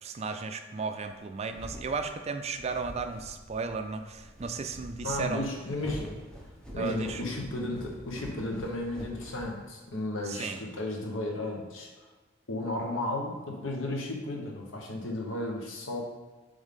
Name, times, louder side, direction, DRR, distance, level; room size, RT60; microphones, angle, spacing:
voice 1, 0.0-5.5 6.8-7.2 10.3-10.6, right 4 dB, 35° right, 7 dB, 0.4 m, -34 dB
sound 1, 1.1-10.0, equal, 5° left, 0.8 m, -46 dB
voice 2, 5.0-6.2 6.7-12.1 12.5-16.0, left 2 dB, 70° left, 0 dB, 1.1 m, -34 dB
7.3 x 3.5 x 3.7 m, 1.3 s
head